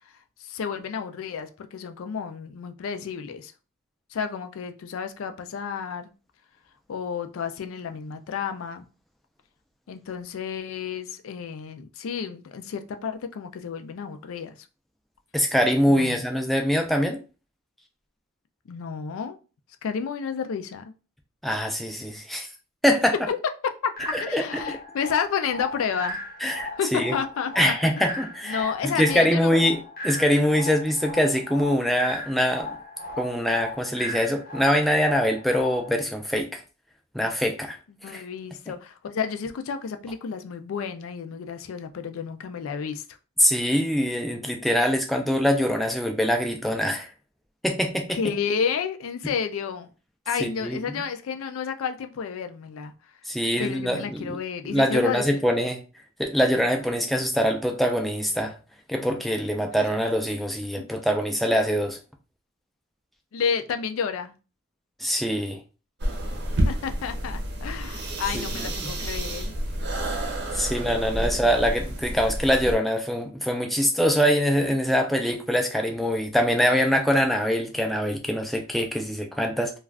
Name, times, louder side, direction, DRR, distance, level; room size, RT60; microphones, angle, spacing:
voice 1, 0.4-3.5 4.1-6.1 6.9-8.9 9.9-14.6 15.9-16.2 18.7-19.4 19.8-20.8 23.3-23.4 23.8-26.2 26.8-27.7 28.5-29.7 38.0-43.0 48.1-49.9 50.3-52.9 53.6-55.4 60.8-60.9 63.3-64.3 66.6-69.5 71.1-71.4, left 6 dB, 75° left, 0.4 m, -31 dB
voice 2, 15.3-17.2 21.4-22.5 22.8-23.1 24.1-24.4 26.4-27.1 27.6-32.7 33.2-36.6 37.1-37.8 38.1-38.2 43.4-47.1 47.6-48.2 50.4-51.0 53.3-54.4 54.6-55.8 56.2-58.6 58.9-62.0 65.0-65.6 68.6-68.9 70.5-79.7, equal, ahead, 0.4 m, -24 dB
sound 1, 24.0-36.0, left 1 dB, 45° left, 0.7 m, -37 dB
sound 2, 66.0-72.7, right 1 dB, 55° right, 0.7 m, -29 dB
2.4 x 2.3 x 3.3 m
head